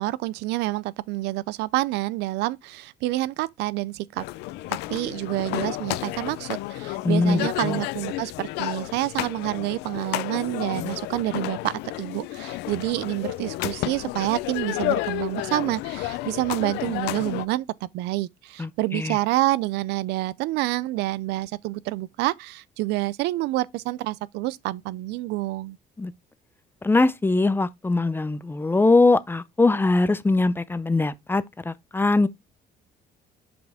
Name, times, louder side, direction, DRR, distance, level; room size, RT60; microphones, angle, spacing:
voice 1, 0.0-4.2 4.9-17.7 17.9-25.8, right 18 dB, 85° right, 0.4 m, -28 dB
sound 1, 4.2-17.4, left 17 dB, 90° left, 0.5 m, -31 dB
voice 2, 7.0-7.8 18.6-19.2 26.0-26.1 26.8-32.3, left 3 dB, 15° left, 0.5 m, -22 dB
5.9 x 5.1 x 3.4 m
cardioid pair, 110°, 17 cm